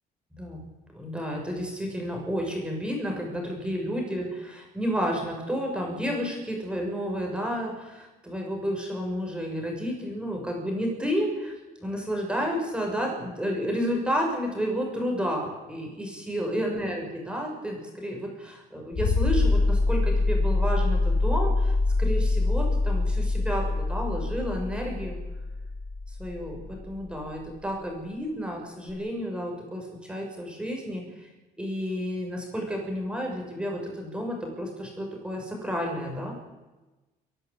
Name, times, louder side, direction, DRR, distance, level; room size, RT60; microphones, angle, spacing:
voice 1, 0.9-11.5 11.8-25.2 26.1-31.3 31.6-36.3, equal, 5° right, 0 dB, 6.5 m, -31 dB
sound 1, 18.9-27.4 28.9-29.0, left 3 dB, 35° left, 4.1 m, -25 dB
29.0 x 12.0 x 8.9 m, 1.1 s
cardioid pair, 110°, 17 cm